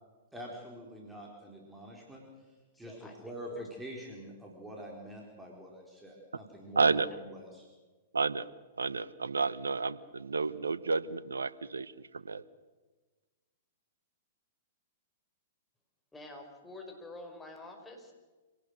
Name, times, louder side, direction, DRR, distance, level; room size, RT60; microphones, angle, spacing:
voice 1, 0.3-2.2 2.8-7.6, right 1 dB, 5° right, -1 dB, 4.4 m, -45 dB
voice 2, 2.7-3.6 16.1-18.1, left 2 dB, 10° left, 2 dB, 5.3 m, -48 dB
voice 3, 6.8-7.1 8.1-8.5 8.8-12.4, right 4 dB, 85° right, 17 dB, 1.0 m, -31 dB
26.5 x 18.0 x 6.6 m, 1.3 s
hypercardioid pair, 110°, 0 cm